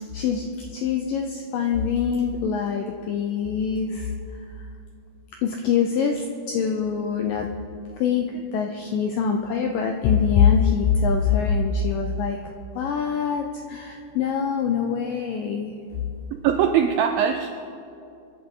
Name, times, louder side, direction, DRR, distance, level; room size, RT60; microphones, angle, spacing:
voice 1, 0.1-4.1 5.4-7.5 8.0-12.4 12.8-15.8, left 6 dB, 80° left, 3 dB, 1.9 m, -24 dB
voice 2, 16.4-17.5, right 8 dB, 85° right, 6 dB, 2.0 m, -21 dB
26.0 x 11.0 x 3.8 m, 2.6 s
omnidirectional pair, 4.8 m